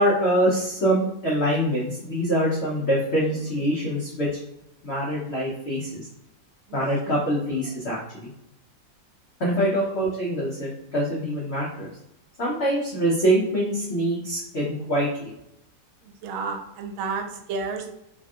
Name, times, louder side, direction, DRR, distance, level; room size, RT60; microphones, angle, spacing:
voice 1, 0.0-4.3 4.8-6.1 6.7-8.3 9.4-11.9 12.4-15.3, right 1 dB, 70° left, -6 dB, 0.6 m, -24 dB
voice 2, 16.0-17.9, right 4 dB, 85° right, 4 dB, 1.4 m, -31 dB
3.3 x 2.6 x 2.3 m, 0.83 s
omnidirectional pair, 2.1 m